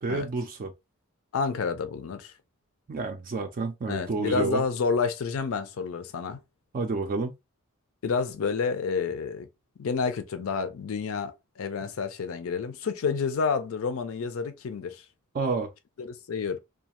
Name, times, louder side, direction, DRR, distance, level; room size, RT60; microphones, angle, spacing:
voice 1, 0.0-0.7 2.9-4.6 6.7-7.3 15.3-15.7, right 3 dB, 40° right, 0.4 m, -29 dB
voice 2, 1.3-2.3 3.9-6.4 8.0-9.5 9.8-15.0 16.0-16.6, left 5 dB, 70° left, 0.5 m, -29 dB
2.4 x 2.3 x 2.8 m
head